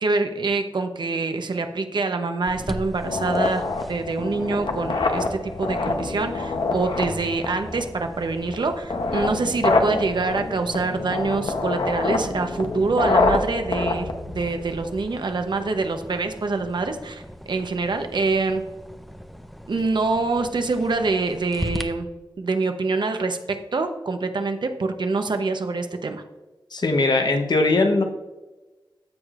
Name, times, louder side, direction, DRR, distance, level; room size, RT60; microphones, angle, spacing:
voice 1, 0.0-18.6 19.7-22.1 22.4-26.2, right 3 dB, 65° right, 6 dB, 0.8 m, -25 dB
sound 1, 2.5-21.8, equal, ahead, 0.6 m, -40 dB
sound 2, 3.0-15.0, left 3 dB, 80° left, 0.8 m, -26 dB
voice 2, 26.7-28.0, left 2 dB, 55° left, 4 dB, 0.9 m, -20 dB
14.5 x 4.9 x 2.4 m, 1.1 s
wide cardioid pair, 95°, 8 cm